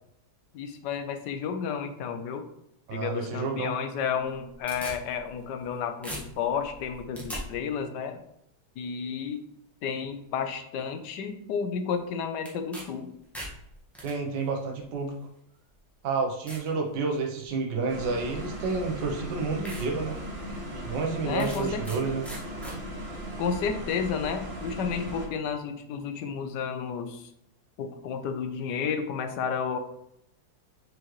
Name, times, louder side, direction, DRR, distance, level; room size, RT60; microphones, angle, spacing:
voice 1, 0.5-2.5 2.9-8.2 8.8-9.4 9.8-13.1 21.2-21.9 23.4-27.3 27.8-29.8, left 6 dB, 75° left, 8 dB, 1.3 m, -31 dB
voice 2, 2.9-3.7 14.0-15.1 16.0-20.2 20.7-22.2, right 4 dB, 75° right, 2 dB, 1.5 m, -30 dB
sound 1, 4.2-5.7 6.0-7.4 12.4-12.8 13.2-14.1 15.0-15.1 15.7-15.8 16.5-16.7 17.2-17.6 18.7-18.8 19.2-19.3 19.6-19.9 20.3-20.4 21.4-22.0 22.2-22.8, equal, ahead, 1.4 m, -40 dB
sound 2, 17.9-25.3, equal, 40° right, 1.3 m, -37 dB
6.6 x 5.0 x 3.1 m, 0.77 s
omnidirectional pair, 1.9 m